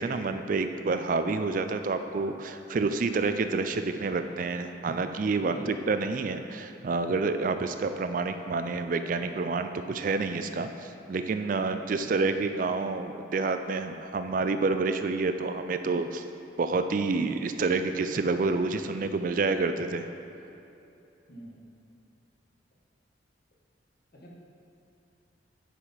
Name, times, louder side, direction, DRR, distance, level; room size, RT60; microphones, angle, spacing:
voice 1, 0.0-16.2 16.6-20.1, right 3 dB, 45° right, 8 dB, 0.4 m, -28 dB
voice 2, 5.4-5.8 21.3-21.6 24.1-24.3, left 1 dB, 55° left, -3 dB, 1.6 m, -44 dB
10.0 x 4.9 x 5.5 m, 2.8 s
head